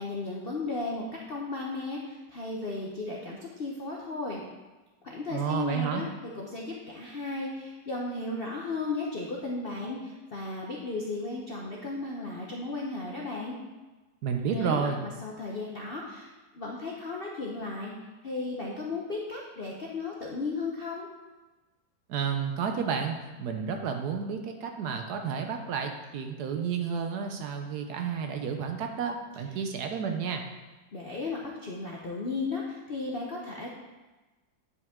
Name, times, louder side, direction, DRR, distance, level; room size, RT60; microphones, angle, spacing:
voice 1, 0.0-4.4 5.0-6.1 6.3-13.6 14.5-17.9 18.2-21.1 30.9-33.7, left 3 dB, 55° left, -2 dB, 0.6 m, -35 dB
voice 2, 5.3-6.0 14.2-15.0 22.1-30.4, right 6 dB, 70° right, 5 dB, 1.1 m, -31 dB
9.5 x 5.1 x 3.6 m, 1.2 s
omnidirectional pair, 2.0 m